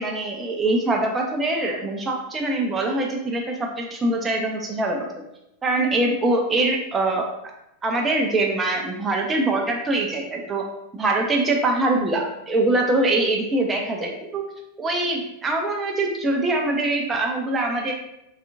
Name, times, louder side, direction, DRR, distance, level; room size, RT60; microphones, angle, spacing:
voice 1, 0.0-5.2 5.6-7.3 7.8-10.7 10.9-14.4 14.8-17.9, right 2 dB, 20° right, 1 dB, 0.4 m, -23 dB
3.4 x 2.3 x 2.6 m, 0.84 s
figure-of-eight pair, 90°, 0 cm